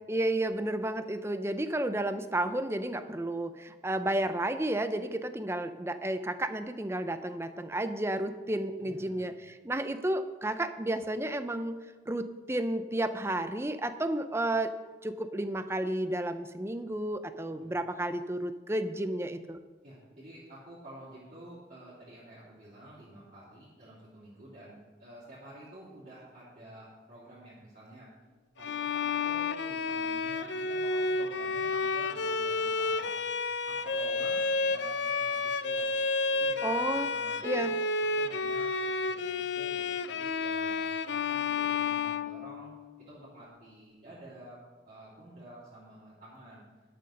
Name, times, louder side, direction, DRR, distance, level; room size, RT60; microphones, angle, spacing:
voice 1, 0.1-11.8 12.1-14.7 15.0-19.6 36.6-37.1 37.4-37.7, right 1 dB, 15° right, 10 dB, 0.5 m, -32 dB
voice 2, 8.8-9.3 17.5-17.7 19.8-28.1 28.6-33.2 33.7-35.9 36.3-37.7 38.1-42.7 43.1-46.6, right 1 dB, 35° right, -10 dB, 3.1 m, -50 dB
Bowed string instrument, 28.6-42.9, left 4 dB, 70° left, 0.5 m, -31 dB
12.0 x 6.8 x 6.5 m, 1.3 s
head